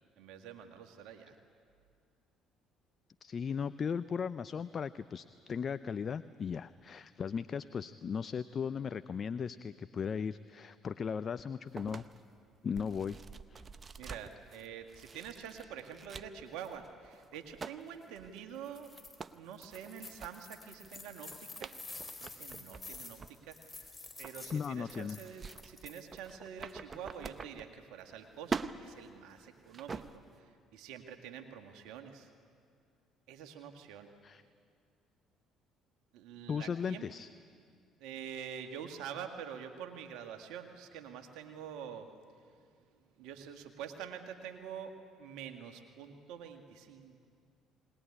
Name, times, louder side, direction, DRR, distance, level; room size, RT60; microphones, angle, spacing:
voice 1, 0.2-1.4 14.0-18.9 19.3-21.8 22.2-23.9 24.2-32.3 33.3-34.1 36.1-37.1 38.0-42.1 43.2-47.2, right 8 dB, 75° right, 5 dB, 1.8 m, -46 dB
voice 2, 3.2-12.0 12.6-13.2 13.5-13.6 24.5-25.2 34.2-34.4 36.5-37.3, left 6 dB, 45° left, 14 dB, 0.5 m, -37 dB
sound 1, 11.7-28.2 28.4-30.4, right 5 dB, 35° right, 0.9 m, -46 dB
sound 2, 18.6-19.2 19.5-26.3, left 3 dB, 20° left, 4.3 m, -49 dB
21.5 x 20.0 x 9.8 m, 2.2 s
hypercardioid pair, 60°, 0 cm